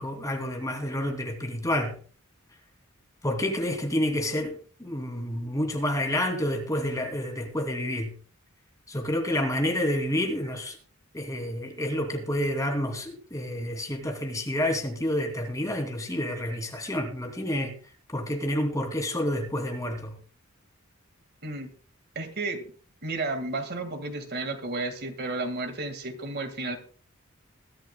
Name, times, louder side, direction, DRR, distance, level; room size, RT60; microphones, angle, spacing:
voice 1, 0.0-2.0 3.2-8.1 8.9-10.8 11.1-17.7 18.1-20.2, left 1 dB, 15° left, 2.7 m, -29 dB
voice 2, 22.2-22.6 23.0-26.8, right 2 dB, 50° right, 1.8 m, -32 dB
21.5 x 13.0 x 2.2 m
head